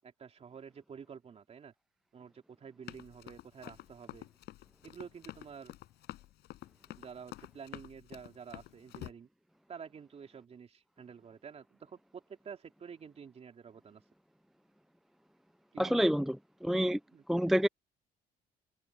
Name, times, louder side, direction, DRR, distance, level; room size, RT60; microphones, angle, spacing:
voice 1, 0.0-1.7 2.1-4.3 4.8-5.7 7.0-9.3 9.7-14.0 15.7-16.0 17.1-17.2, right 6 dB, 40° right, 3.2 m, -49 dB
Run, 2.9-9.1, left 15 dB, 80° left, 7.6 m, -48 dB
voice 2, 15.8-16.3 16.6-17.0 17.3-17.7, equal, ahead, 0.4 m, -27 dB
cardioid pair, 110°, 17 cm